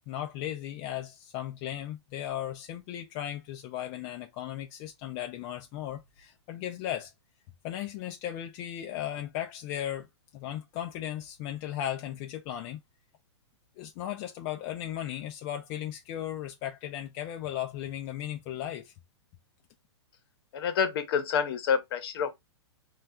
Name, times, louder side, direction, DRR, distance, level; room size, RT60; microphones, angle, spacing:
voice 1, 0.1-7.1 7.6-10.1 10.3-12.8 13.8-18.9, left 11 dB, 35° left, 0.4 m, -36 dB
voice 2, 20.5-22.4, left 7 dB, 55° left, 0.9 m, -28 dB
4.1 x 2.4 x 2.3 m
hypercardioid pair, 125°, 15 cm